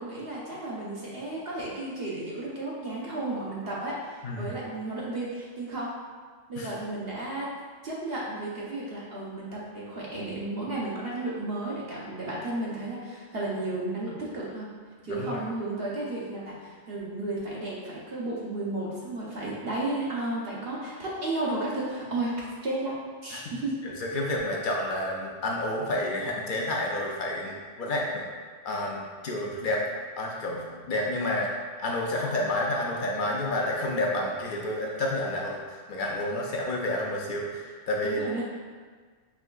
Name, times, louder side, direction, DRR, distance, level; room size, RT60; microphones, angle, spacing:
voice 1, 0.0-5.9 6.5-7.5 7.8-14.7 15.0-23.7 38.0-38.4, right 2 dB, 55° right, -5 dB, 1.0 m, -33 dB
voice 2, 15.1-15.4 23.3-23.5 23.8-28.2 28.6-29.8 30.2-31.5 31.8-38.2, left 1 dB, 60° left, -1 dB, 0.5 m, -30 dB
4.7 x 3.4 x 2.3 m, 1.6 s
omnidirectional pair, 1.3 m